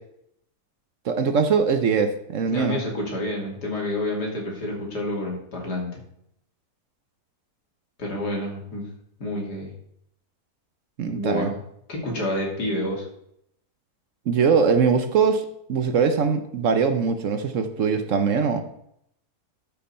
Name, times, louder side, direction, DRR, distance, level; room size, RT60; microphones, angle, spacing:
voice 1, 1.0-2.8 11.0-11.5 14.3-18.6, right 5 dB, 60° right, 8 dB, 1.0 m, -22 dB
voice 2, 2.5-6.0 8.0-8.9 9.2-9.7 11.0-11.6 11.9-13.1, left 1 dB, 85° left, -1 dB, 3.2 m, -29 dB
12.5 x 5.7 x 4.3 m, 0.73 s
omnidirectional pair, 1.7 m